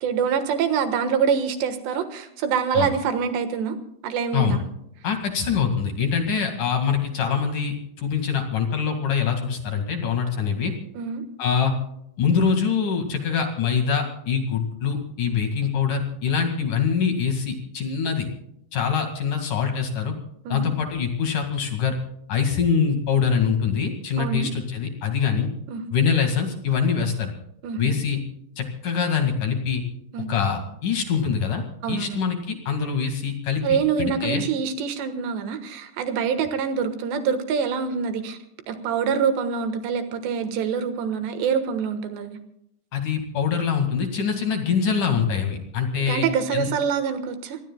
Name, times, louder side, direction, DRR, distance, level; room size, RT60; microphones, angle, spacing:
voice 1, 0.0-3.8 4.0-4.6 11.0-11.2 20.5-20.7 24.2-24.5 25.7-25.8 27.6-27.9 30.1-30.3 31.8-32.2 33.6-38.4 38.7-42.4 46.1-47.6, right 6 dB, 75° right, 8 dB, 3.5 m, -25 dB
voice 2, 5.0-10.7 11.4-11.7 12.2-18.3 18.7-20.1 20.5-22.0 22.3-25.5 25.9-27.3 27.8-28.2 28.6-29.8 30.3-34.5 42.9-46.2 46.5-46.7, left 6 dB, 50° left, 5 dB, 3.1 m, -24 dB
27.0 x 20.5 x 2.3 m, 0.76 s
omnidirectional pair, 5.3 m